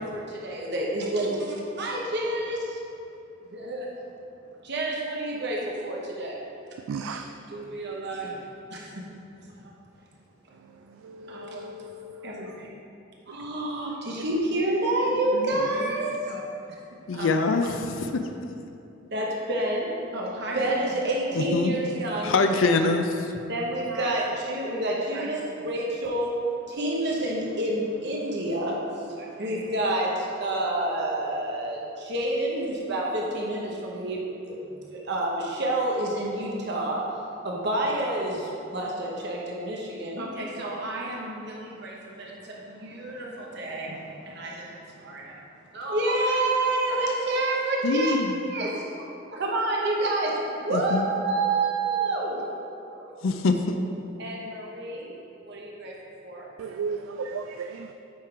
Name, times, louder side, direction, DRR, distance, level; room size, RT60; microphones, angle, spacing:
voice 1, 0.1-2.8 3.4-3.9 4.6-6.4 7.5-8.4 8.7-8.9 9.5-9.7 11.3-11.7 12.2-12.7 13.3-16.4 17.1-17.5 19.1-22.4 23.5-26.3 26.7-34.2 34.4-34.6 34.9-37.0 37.4-45.3 45.7-48.8 49.3-52.5 52.9-53.4 54.2-55.2 55.5-55.9 56.2-56.8, right 1 dB, 60° right, 1.0 m, -29 dB
voice 2, 6.9-7.2 11.3-11.9 12.2-12.5 56.6-57.9, right 4 dB, 90° right, 0.3 m, -34 dB
voice 3, 17.1-18.2 21.4-21.7 22.2-23.1 47.8-48.3 50.7-51.1 53.2-53.7, left 3 dB, 80° left, 0.4 m, -24 dB
8.7 x 3.8 x 4.6 m
head